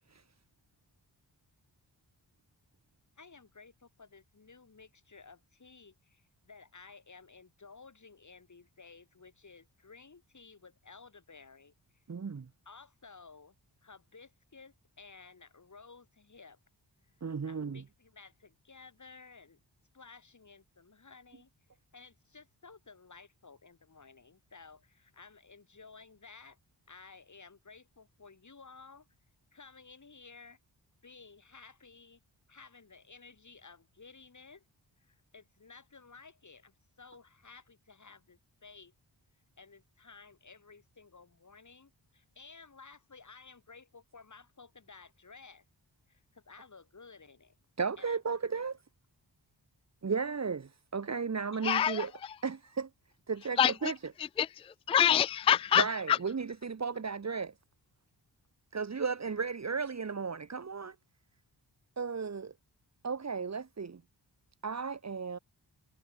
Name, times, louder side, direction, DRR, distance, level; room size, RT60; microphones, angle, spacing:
voice 1, 3.2-12.0 12.6-13.5 13.8-16.6 17.1-17.2 17.5-19.6 19.9-21.5 21.9-26.6 26.9-29.1 29.5-30.6 31.0-32.2 32.5-34.6 35.0-38.9 39.6-45.6 46.1-47.6 48.0-48.2 48.5-48.6, left 4 dB, 40° left, 2.7 m, -55 dB
voice 2, 12.1-12.5 17.2-17.8 47.8-48.8 50.0-52.1 52.4-52.9 53.3-53.9 55.8-57.5 58.7-60.9 62.0-62.5 63.0-64.0 64.6-65.4, right 5 dB, 35° right, 1.0 m, -34 dB
voice 3, 51.6-52.1 53.6-53.9 54.4-56.2, left 9 dB, 15° left, 0.3 m, -26 dB
wide cardioid pair, 85°, 44 cm